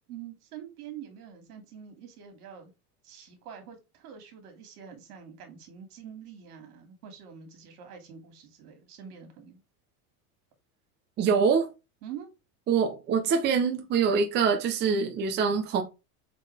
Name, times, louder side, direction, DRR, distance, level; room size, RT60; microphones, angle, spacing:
voice 1, 0.1-2.7 3.0-9.6 12.0-12.3, right 8 dB, 80° right, 2.8 m, -45 dB
voice 2, 11.2-11.7 12.7-15.8, right 6 dB, 25° right, 0.9 m, -24 dB
8.0 x 4.1 x 3.5 m
supercardioid pair, 165°, 45 cm